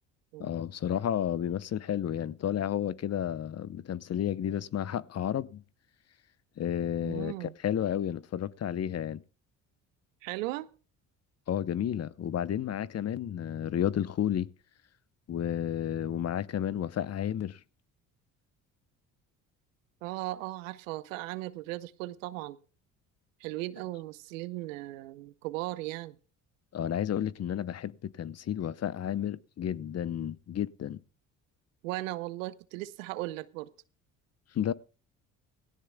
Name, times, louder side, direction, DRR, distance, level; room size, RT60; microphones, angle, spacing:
voice 1, 0.4-5.6 6.6-9.2 11.5-14.5 15.3-17.6 26.7-31.0 34.5-34.7, left 10 dB, 40° left, 0.8 m, -31 dB
voice 2, 7.0-7.5 10.2-10.7 20.0-22.6 23.4-26.2 31.8-33.7, right 18 dB, 90° right, 0.7 m, -37 dB
17.0 x 17.0 x 2.2 m
hypercardioid pair, 65°, 38 cm